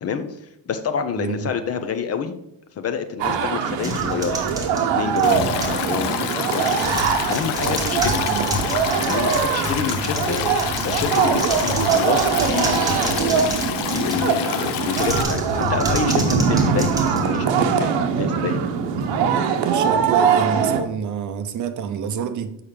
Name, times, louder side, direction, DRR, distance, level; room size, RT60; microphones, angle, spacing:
voice 1, 0.0-0.4 0.7-2.3 2.8-4.4 4.9-8.2 9.1-18.6, left 7 dB, 35° left, 0.6 m, -28 dB
voice 2, 1.2-1.5 7.6-8.8 19.1-22.6, right 7 dB, 45° right, 0.6 m, -28 dB
sound 1, 3.2-20.8, right 6 dB, 85° right, 1.1 m, -22 dB
sound 2, 3.8-5.9 6.4-14.4 14.9-17.8, left 1 dB, 10° right, 1.2 m, -30 dB
Stream, 5.2-15.2, left 11 dB, 65° left, 0.7 m, -28 dB
7.0 x 5.7 x 4.8 m
cardioid pair, 175°, 43 cm